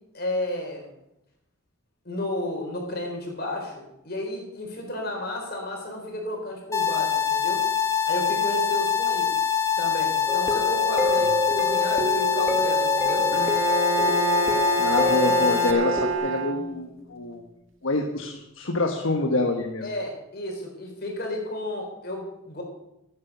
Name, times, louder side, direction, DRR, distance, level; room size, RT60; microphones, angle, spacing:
voice 1, 0.1-0.9 2.0-7.6 8.0-9.4 9.7-13.2 19.8-22.6, left 1 dB, 50° left, 1 dB, 4.2 m, -32 dB
sound 1, 6.7-15.7, left 8 dB, 15° left, 1.3 m, -24 dB
sound 2, 10.3-16.1, equal, 5° right, 1.5 m, -27 dB
Bowed string instrument, 13.3-17.0, right 6 dB, 65° right, 1.7 m, -28 dB
voice 2, 14.8-17.4 17.8-19.9, left 2 dB, 70° left, 3 dB, 1.3 m, -26 dB
15.5 x 9.6 x 6.9 m, 0.87 s
head